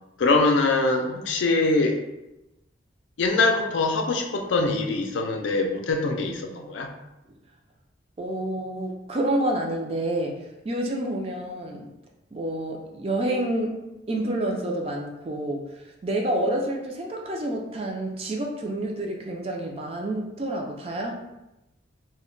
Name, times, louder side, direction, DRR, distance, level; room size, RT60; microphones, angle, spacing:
voice 1, 0.2-2.0 3.2-6.9, left 3 dB, 85° left, 4 dB, 0.4 m, -23 dB
voice 2, 8.2-10.4 10.6-11.9 12.3-21.1, right 1 dB, 30° right, 1 dB, 0.4 m, -28 dB
2.1 x 2.1 x 3.7 m, 0.94 s
head